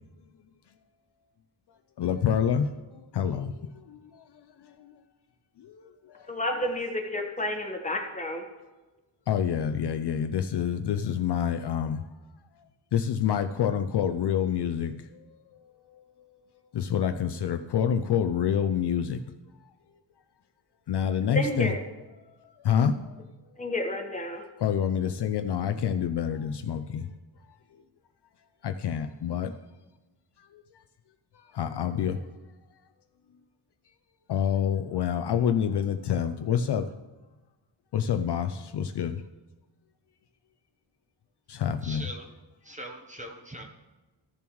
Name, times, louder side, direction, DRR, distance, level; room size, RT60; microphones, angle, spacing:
voice 1, 2.0-2.7 3.1-3.5 3.9-4.2 5.6-5.8 9.3-12.0 12.9-14.9 16.7-19.2 20.9-21.7 22.6-22.9 24.6-27.1 28.6-29.5 31.5-32.2 34.3-36.9 37.9-39.2 41.5-42.1, left 8 dB, 60° left, 7 dB, 0.5 m, -27 dB
voice 2, 6.3-8.4 21.3-21.8 23.6-24.4, left 1 dB, 15° left, 3 dB, 1.2 m, -30 dB
voice 3, 41.8-42.2 42.7-43.6, right 1 dB, 15° right, 2 dB, 0.8 m, -41 dB
14.0 x 7.0 x 3.1 m, 1.1 s
wide cardioid pair, 125°, 47 cm